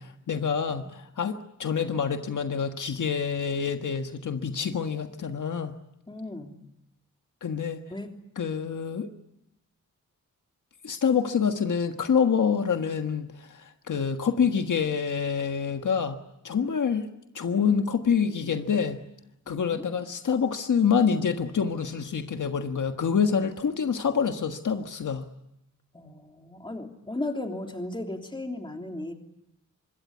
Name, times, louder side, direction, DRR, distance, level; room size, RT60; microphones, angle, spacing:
voice 1, 0.0-5.7 7.4-7.8 8.4-9.1 10.8-16.2 16.4-17.1 17.3-19.0 19.5-25.2, left 6 dB, 70° left, 6 dB, 1.5 m, -26 dB
voice 2, 6.1-6.6 7.9-8.1 19.4-19.9 25.9-29.1, left 2 dB, 15° left, 3 dB, 3.1 m, -36 dB
25.5 x 22.5 x 9.4 m, 0.82 s
wide cardioid pair, 170°, 32 cm